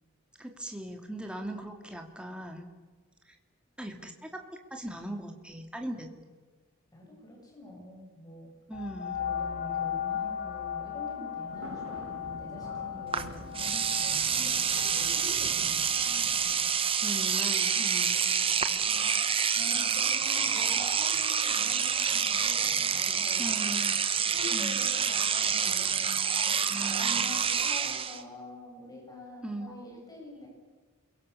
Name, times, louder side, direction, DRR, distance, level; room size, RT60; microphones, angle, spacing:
voice 1, 0.4-2.7 3.3-3.4 3.8-4.4 4.7-6.2 8.7-9.2 17.0-18.2 23.4-24.0 24.5-24.9 26.7-27.4 29.4-29.8, right 1 dB, 5° right, 3 dB, 2.7 m, -39 dB
voice 2, 6.9-8.5 9.1-16.7 18.1-23.8 24.3-30.5, left 1 dB, 20° left, -2 dB, 7.7 m, -46 dB
sound 1, 8.7-18.0 18.6-18.7, left 9 dB, 40° left, 1.6 m, -37 dB
sound 2, 11.5-16.6, right 1 dB, 65° right, 5.3 m, -47 dB
Engine / Domestic sounds home sounds, 13.1-13.2 13.5-28.2, right 7 dB, 25° right, 1.3 m, -27 dB
29.0 x 22.5 x 7.1 m, 1.4 s
head